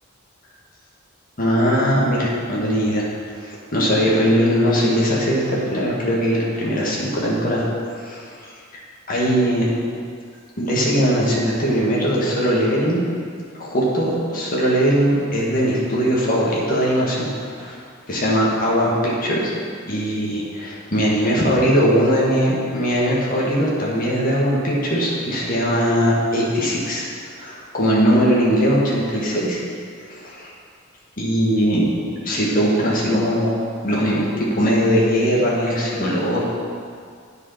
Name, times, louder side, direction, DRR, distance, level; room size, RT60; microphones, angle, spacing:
voice 1, 1.4-3.1 3.4-7.6 7.9-8.5 9.1-9.6 10.6-13.0 13.5-17.8 18.1-19.5 19.9-29.6 30.0-30.5 31.2-31.9 32.2-36.4, equal, 45° left, -5 dB, 1.8 m, -20 dB
9.7 x 5.0 x 5.7 m, 2.2 s
head